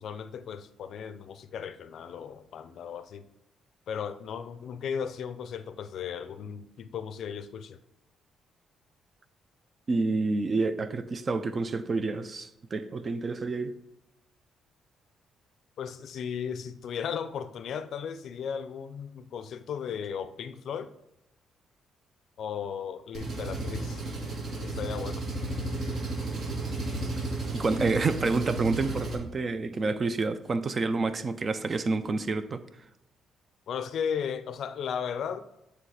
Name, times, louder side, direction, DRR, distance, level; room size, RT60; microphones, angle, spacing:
voice 1, 0.0-3.2 3.9-7.8 15.8-20.9 22.4-24.0 24.5-25.2 33.7-35.4, left 7 dB, 65° left, 0.5 m, -36 dB
voice 2, 9.9-13.8 27.5-32.6, right 3 dB, 40° right, 0.5 m, -28 dB
Engine, 23.1-29.2, right 2 dB, 60° right, 1.6 m, -33 dB
7.9 x 3.3 x 4.8 m
cardioid pair, 90°, 0 cm